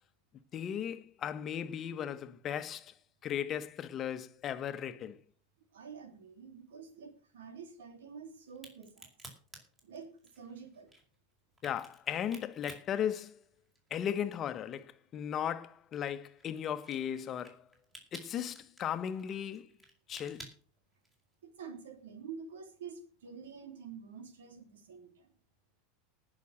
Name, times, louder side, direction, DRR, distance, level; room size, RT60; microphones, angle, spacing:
voice 1, 0.5-2.9 3.2-5.2 11.6-13.4 13.9-17.6 18.1-19.7 20.1-20.5, left 9 dB, 35° left, 1.3 m, -36 dB
voice 2, 5.7-9.1 9.8-10.9 21.4-25.3, right 6 dB, 70° right, 3.1 m, -48 dB
Crack, 8.5-14.0 14.3-21.3, right 1 dB, 15° right, 5.2 m, -54 dB
19.0 x 6.4 x 6.5 m
figure-of-eight pair, 85°, 0 cm